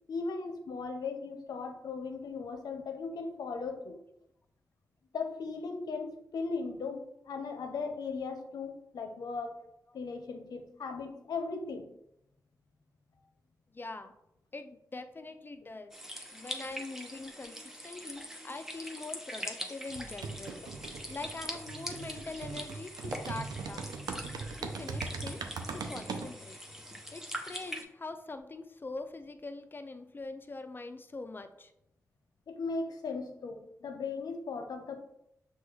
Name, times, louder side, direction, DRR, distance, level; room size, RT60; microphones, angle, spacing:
voice 1, 0.1-4.0 5.1-9.5 9.9-11.9 20.6-20.7 32.5-35.0, left 4 dB, 85° left, 5 dB, 0.6 m, -37 dB
voice 2, 13.7-14.1 14.5-15.9 16.3-20.6 21.1-24.2 24.6-26.6 27.1-31.7, left 3 dB, 30° left, 9 dB, 0.4 m, -43 dB
sound 1, 15.9-27.8, equal, 5° right, 0.7 m, -43 dB
sound 2, 19.9-26.3, right 4 dB, 90° right, 0.4 m, -40 dB
6.1 x 2.3 x 3.1 m, 0.80 s
cardioid pair, 65°, 7 cm